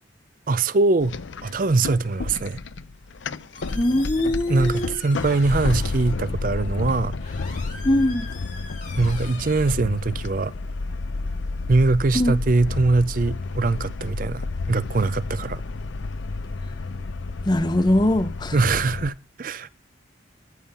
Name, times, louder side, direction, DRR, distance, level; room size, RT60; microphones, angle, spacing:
voice 1, 0.5-2.6 4.5-7.1 9.0-10.5 11.7-15.6 18.5-19.7, right 3 dB, 45° right, 0.5 m, -22 dB
sound 1, 1.0-19.1, left 3 dB, 75° left, 0.6 m, -31 dB
Squeak, 3.0-10.5, left 4 dB, 40° left, 3.3 m, -43 dB
voice 2, 3.8-5.0 7.8-8.3 12.1-12.3 17.5-18.6, left 1 dB, 20° left, 0.7 m, -21 dB
14.0 x 5.7 x 6.9 m
head